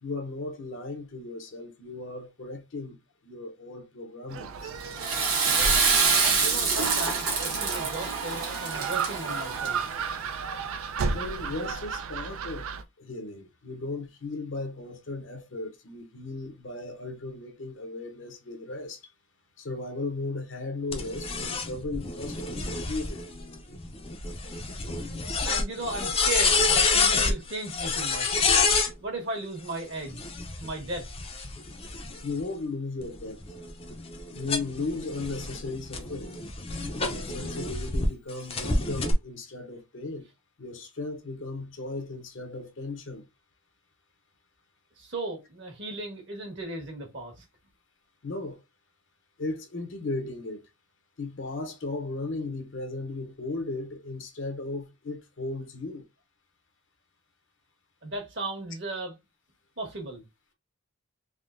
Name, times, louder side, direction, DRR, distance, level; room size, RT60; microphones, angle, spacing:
voice 1, 0.0-3.0 3.2-4.7 11.1-12.7 13.0-19.1 19.6-23.2 32.2-33.4 34.2-36.4 37.1-40.3 40.6-43.3 48.2-48.6 49.4-50.6 51.2-56.0, left 3 dB, 60° left, 0.8 m, -36 dB
Gull seagull, 4.3-12.8, right 5 dB, 75° right, 0.4 m, -34 dB
Water / Toilet flush, 4.8-10.0, right 5 dB, 90° right, 1.1 m, -26 dB
voice 2, 6.2-9.8 25.4-28.3 29.0-30.3 30.6-31.1 45.0-47.4 58.0-59.1 59.8-60.2, right 2 dB, 55° right, 1.3 m, -36 dB
sound 1, 20.9-28.9 30.1-32.4 33.0-38.1 38.5-39.1, left 4 dB, 25° left, 0.5 m, -28 dB
3.6 x 2.7 x 2.5 m
head